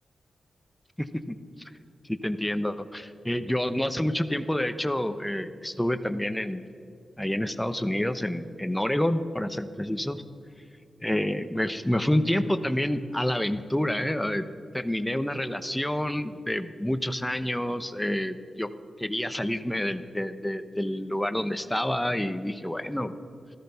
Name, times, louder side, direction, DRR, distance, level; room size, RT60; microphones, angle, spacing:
voice 1, 1.0-1.4 2.1-6.6 7.2-10.2 11.0-14.4 14.7-18.7 19.0-23.1, left 1 dB, 10° left, 10 dB, 0.9 m, -28 dB
14.0 x 13.5 x 5.8 m, 2.4 s
cardioid pair, 65°, 0 cm